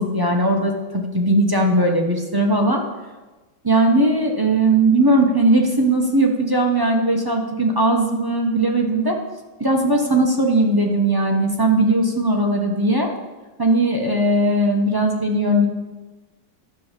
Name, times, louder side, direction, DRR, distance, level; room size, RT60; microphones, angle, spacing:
voice 1, 0.0-2.8 3.6-9.2 9.6-13.1 13.6-15.7, right 1 dB, 20° right, 1 dB, 0.6 m, -18 dB
11.5 x 5.3 x 7.4 m, 1.2 s
omnidirectional pair, 2.0 m